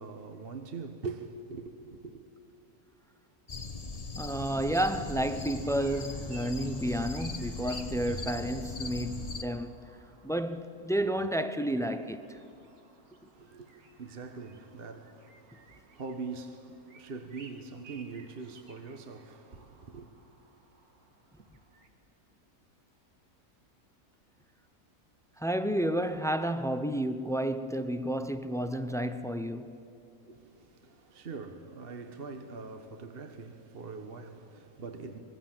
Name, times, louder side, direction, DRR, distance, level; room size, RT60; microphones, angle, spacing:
voice 1, 0.0-2.2 13.3-20.1 30.2-35.2, right 4 dB, 40° right, 1.3 m, -43 dB
sound 1, 3.5-9.4, left 3 dB, 30° left, 1.0 m, -39 dB
voice 2, 4.2-9.7 10.2-12.4 25.4-29.8, right 1 dB, 5° left, 0.3 m, -31 dB
sound 2, 4.5-21.9, right 3 dB, 70° right, 2.4 m, -57 dB
25.5 x 22.0 x 7.5 m
omnidirectional pair, 1.6 m